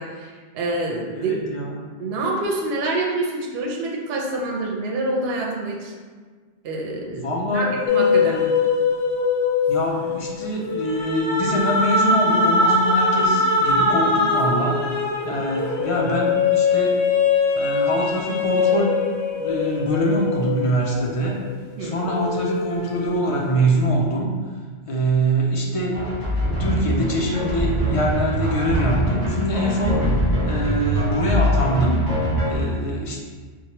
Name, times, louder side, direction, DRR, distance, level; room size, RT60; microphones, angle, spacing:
voice 1, 0.0-1.3 2.0-5.9 6.6-7.2 7.5-8.4 15.3-15.4 21.8-22.0 32.6-32.7, right 2 dB, 70° right, -1 dB, 0.8 m, -26 dB
voice 2, 1.1-1.7 7.1-7.7 8.1-8.5 9.7-16.9 17.5-19.0 19.3-21.4 21.8-24.3 24.9-26.2 26.6-30.2 30.5-32.0 32.5-33.2, equal, 55° left, -2 dB, 0.4 m, -24 dB
sound 1, 7.9-21.6 22.0-23.7, left 3 dB, 85° left, 0.9 m, -22 dB
sound 2, 25.9-32.6, equal, 20° left, 1.1 m, -23 dB
4.4 x 2.2 x 2.9 m, 1.5 s
omnidirectional pair, 1.1 m